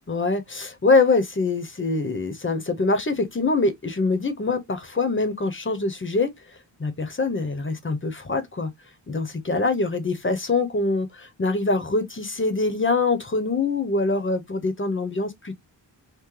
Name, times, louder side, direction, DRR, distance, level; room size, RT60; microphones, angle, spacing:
voice 1, 0.1-6.3 6.8-8.7 9.1-15.5, left 3 dB, 25° left, 0.9 m, -24 dB
5.8 x 2.2 x 3.2 m
wide cardioid pair, 105°, 45 cm